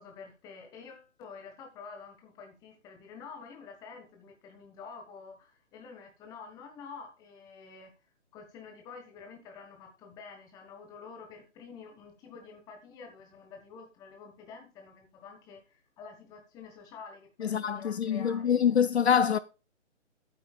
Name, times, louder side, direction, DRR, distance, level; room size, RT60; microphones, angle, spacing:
voice 1, 0.0-7.9 8.3-18.6, left 5 dB, 10° left, 1.3 m, -48 dB
voice 2, 17.4-19.4, left 8 dB, 60° left, 0.6 m, -25 dB
11.0 x 9.0 x 2.3 m
figure-of-eight pair, 155°, 37 cm